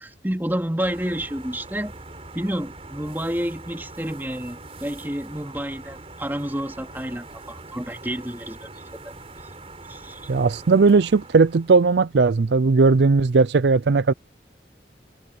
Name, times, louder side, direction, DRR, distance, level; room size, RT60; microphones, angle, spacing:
voice 1, 0.0-1.9 2.3-8.7 9.0-9.1 9.9-10.2, equal, 10° right, 2.8 m, -29 dB
sound 1, 0.8-12.1, right 2 dB, 35° right, 4.1 m, -43 dB
voice 2, 10.3-14.1, right 4 dB, 75° right, 0.5 m, -17 dB
head